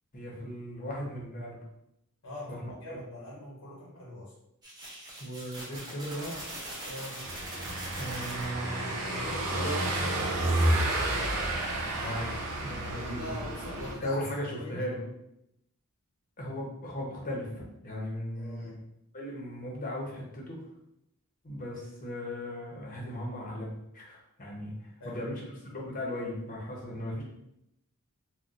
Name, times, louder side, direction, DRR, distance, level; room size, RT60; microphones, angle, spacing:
voice 1, 0.1-1.7 2.5-3.0 5.2-6.4 8.0-8.9 9.5-9.8 12.0-13.3 14.0-15.0 16.4-18.8 19.1-20.6 21.4-27.2, equal, 40° left, -2 dB, 0.7 m, -37 dB
voice 2, 2.2-4.3 6.8-7.3 9.0-11.6 12.9-14.9 18.3-18.8 25.0-25.2, left 1 dB, 70° left, -4 dB, 0.8 m, -43 dB
sound 1, 4.6-8.5 10.4-10.5 10.8-11.0 11.5-11.7 13.7-13.8 14.2-14.3, right 1 dB, 20° right, 0.9 m, -42 dB
Car passing by / Engine, 7.2-13.9, right 1 dB, 80° right, 0.6 m, -30 dB
3.9 x 2.2 x 2.4 m, 0.82 s
head